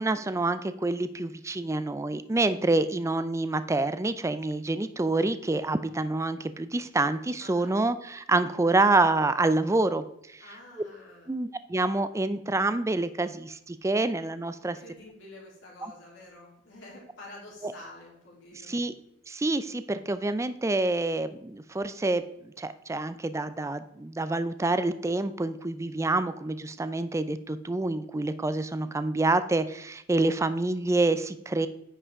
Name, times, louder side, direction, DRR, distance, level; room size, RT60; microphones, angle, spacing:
voice 1, 0.0-10.0 10.3-10.5 11.3-14.8 15.8-15.9 17.6-17.7 18.7-18.9 19.3-31.7, right 2 dB, 15° right, 12 dB, 0.4 m, -27 dB
voice 2, 7.4-7.8 10.4-11.3 14.6-18.8, left 2 dB, 75° left, -4 dB, 3.5 m, -48 dB
9.6 x 5.5 x 3.6 m, 0.77 s
head